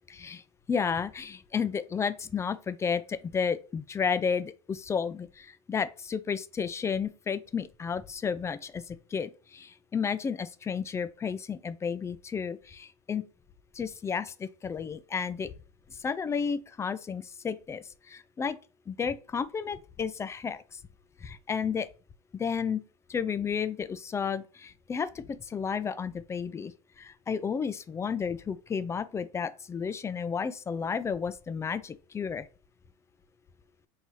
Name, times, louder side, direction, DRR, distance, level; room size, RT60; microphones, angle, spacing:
voice 1, 0.1-0.4 0.7-13.2 13.8-15.5 16.0-18.6 18.9-20.6 21.2-21.9 22.3-22.8 23.1-26.7 27.0-32.5, left 6 dB, 15° left, 0.3 m, -32 dB
4.6 x 2.7 x 3.0 m
hypercardioid pair, 95°, 17 cm